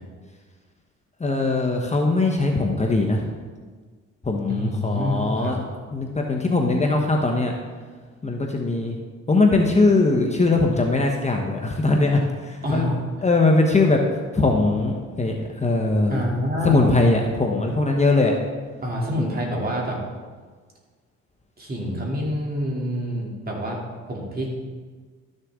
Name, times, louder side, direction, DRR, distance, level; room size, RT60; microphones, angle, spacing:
voice 1, 1.2-3.3 4.2-5.6 5.9-7.5 8.2-9.0 9.3-12.9 13.2-14.0 14.3-16.2 16.6-18.3, left 2 dB, 25° left, 1 dB, 1.1 m, -21 dB
voice 2, 4.4-5.5 12.6-12.9 16.1-16.9 18.8-20.0 21.6-23.8 24.1-24.5, equal, 30° right, -2 dB, 2.9 m, -27 dB
13.0 x 6.6 x 3.7 m, 1.5 s
cardioid pair, 80°, 30 cm